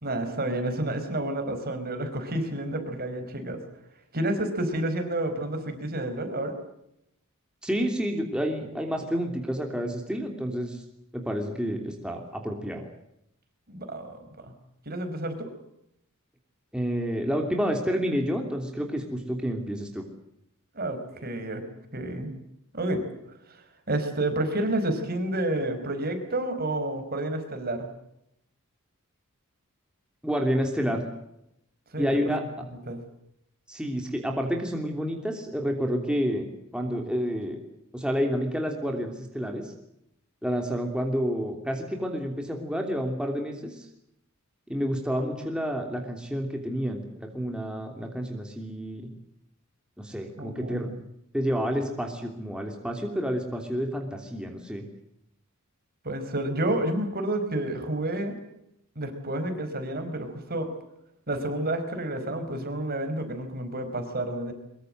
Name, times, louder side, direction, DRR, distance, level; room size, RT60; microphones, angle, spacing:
voice 1, 0.0-3.6 4.1-6.6 13.7-14.5 14.8-15.5 20.7-21.6 21.9-22.3 22.7-23.0 23.5-23.6 23.9-27.9 31.9-32.3 32.9-33.0 50.4-50.9 56.0-58.3 58.9-60.7 61.3-64.5, right 1 dB, 45° right, 7 dB, 4.9 m, -30 dB
voice 2, 7.6-10.8 11.1-12.9 16.7-20.0 30.2-31.0 32.0-32.4 33.7-37.6 37.9-39.7 40.4-43.9 44.7-49.1 50.0-50.9 51.3-54.8, equal, 5° right, 2 dB, 3.1 m, -29 dB
23.5 x 23.0 x 7.8 m, 0.79 s
head